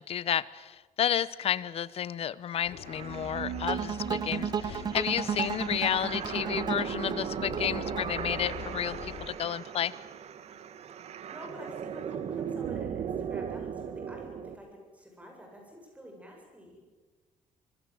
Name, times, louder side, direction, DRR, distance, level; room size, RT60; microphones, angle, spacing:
voice 1, 0.0-9.9, left 9 dB, 45° left, 19 dB, 0.9 m, -31 dB
sound 1, 2.6-9.3, left 7 dB, 75° left, 3.9 m, -44 dB
sound 2, 2.8-14.6, right 8 dB, 50° right, 1.4 m, -37 dB
sound 3, 3.7-8.8, right 7 dB, 30° right, 0.8 m, -34 dB
voice 2, 11.0-14.7 14.9-16.9, equal, 10° right, 1 dB, 7.7 m, -48 dB
26.0 x 21.5 x 7.8 m, 1.3 s
cardioid pair, 155°, 14 cm